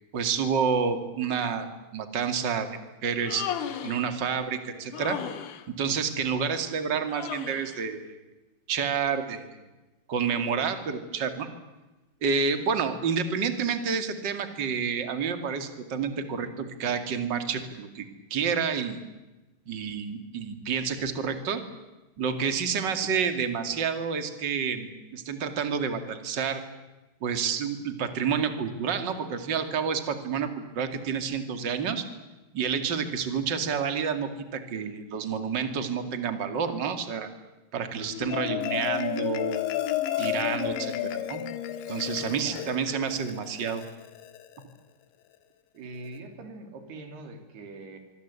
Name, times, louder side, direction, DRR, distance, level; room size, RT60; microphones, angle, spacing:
voice 1, 0.1-1.7 1.9-2.7 3.0-3.5 3.8-5.2 5.7-8.2 8.7-9.4 10.1-11.5 12.2-18.0 18.3-19.0 19.7-21.6 22.2-26.6 27.2-32.0 32.5-37.3 37.7-39.6 40.2-41.4 41.9-43.8, right 6 dB, 35° right, 8 dB, 1.9 m, -29 dB
Human voice, 3.0-4.1 4.9-5.7 7.1-7.8, left 9 dB, 60° left, 2.3 m, -35 dB
Marimba xylophone, 38.0-44.6, left 12 dB, 80° left, 3.6 m, -32 dB
voice 2, 42.2-42.7 45.7-48.0, right 2 dB, 65° right, 6 dB, 5.0 m, -43 dB
25.0 x 24.5 x 8.3 m, 1.1 s
omnidirectional pair, 5.2 m